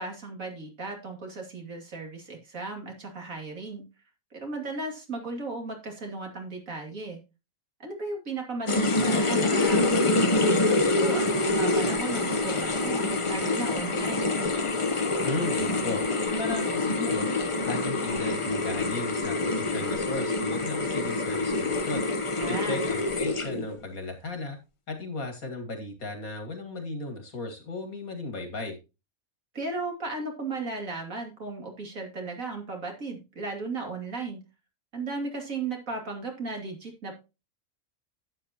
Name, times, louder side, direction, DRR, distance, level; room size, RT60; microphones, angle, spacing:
voice 1, 0.0-3.8 4.3-7.2 7.8-14.3 22.4-22.8 29.5-34.4 34.9-37.1, right 3 dB, 70° right, 2 dB, 3.1 m, -36 dB
sound 1, 8.7-23.8, left 2 dB, 25° left, 0.8 m, -26 dB
voice 2, 15.2-17.3 17.6-24.6 24.9-28.8, left 2 dB, 80° left, 5 dB, 2.7 m, -35 dB
11.5 x 8.8 x 2.9 m, 0.29 s
omnidirectional pair, 1.5 m